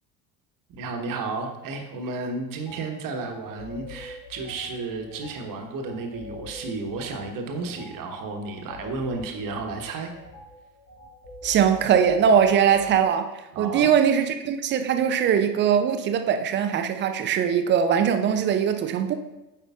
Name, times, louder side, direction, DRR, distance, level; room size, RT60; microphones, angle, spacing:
voice 1, 0.7-10.1 13.5-13.9, right 3 dB, 40° right, 3 dB, 1.1 m, -32 dB
sound 1, 2.7-2.8 3.3-13.0, left 2 dB, 80° left, 2.0 m, -44 dB
voice 2, 11.4-13.3 13.6-19.1, right 8 dB, 25° right, 8 dB, 0.4 m, -21 dB
8.7 x 4.8 x 2.4 m, 1.0 s
figure-of-eight pair, 70°, 49 cm